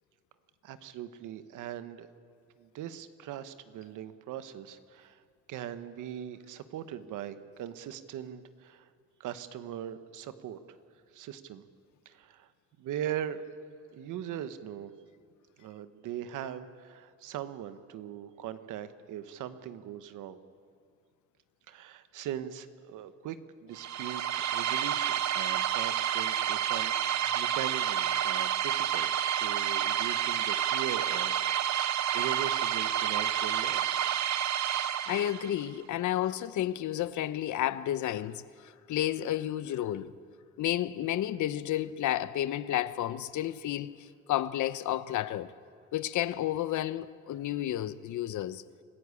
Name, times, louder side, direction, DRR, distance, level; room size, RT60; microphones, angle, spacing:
voice 1, 0.6-2.1 2.6-5.2 5.5-8.9 9.2-10.6 11.1-11.6 12.0-12.5 12.8-13.4 13.9-14.9 15.6-20.4 21.7-23.4 23.6-31.8 32.1-34.1, right 10 dB, 85° right, 1.2 m, -40 dB
sound 1, 23.8-35.6, right 10 dB, 70° right, 0.9 m, -29 dB
voice 2, 35.1-40.1 40.6-43.9 44.3-45.5 45.9-48.6, left 12 dB, 75° left, 0.9 m, -31 dB
26.5 x 15.0 x 8.4 m
cardioid pair, 90°, 30 cm